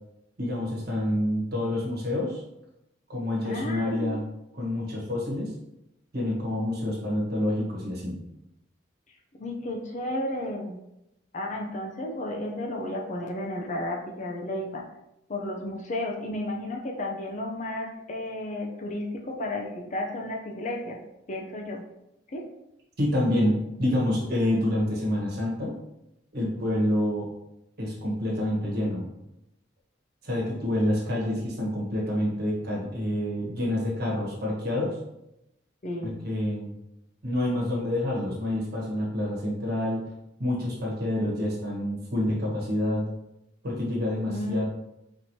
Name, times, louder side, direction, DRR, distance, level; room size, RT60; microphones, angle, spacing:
voice 1, 0.4-2.4 3.1-4.2 4.5-5.5 6.1-8.2 23.0-25.7 26.3-27.3 27.8-29.1 30.2-35.0 36.0-36.7 37.2-40.0 40.4-43.1 43.6-44.6, left 1 dB, 55° right, -3 dB, 1.3 m, -27 dB
voice 2, 3.4-4.2 9.4-10.8 11.3-14.8 15.3-21.0 21.3-21.8 22.3-22.5 35.8-36.2 44.3-44.6, left 1 dB, 40° left, 1 dB, 0.5 m, -33 dB
4.3 x 3.1 x 2.7 m, 0.87 s
head